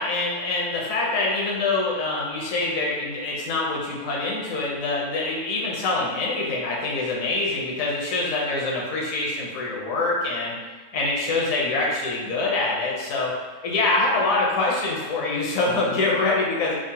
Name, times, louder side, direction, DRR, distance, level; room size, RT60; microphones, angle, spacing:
voice 1, 0.0-10.5 10.9-13.3 13.6-16.7, left 2 dB, 70° left, -3 dB, 1.0 m, -25 dB
3.6 x 2.0 x 2.7 m, 1.3 s
omnidirectional pair, 1.5 m